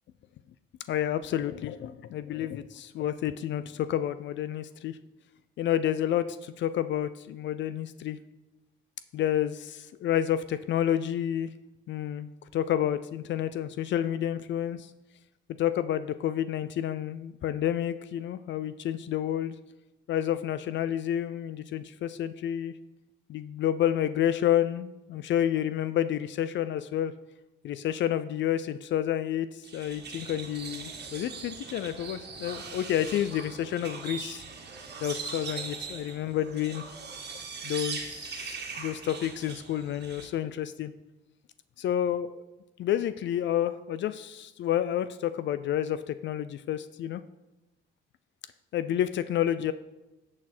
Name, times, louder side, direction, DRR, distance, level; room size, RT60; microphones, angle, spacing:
voice 1, 0.9-5.0 5.6-8.2 9.1-11.5 11.9-14.9 15.6-19.6 20.1-22.8 23.3-27.1 27.6-34.4 35.0-36.8 37.6-40.9 41.8-42.4 42.8-47.2 48.7-49.7, left 11 dB, 65° left, 13 dB, 0.4 m, -29 dB
sound 1, 29.6-40.3, right 5 dB, 60° right, 1.7 m, -40 dB
10.5 x 6.3 x 4.4 m, 1.0 s
cardioid pair, 90°, 20 cm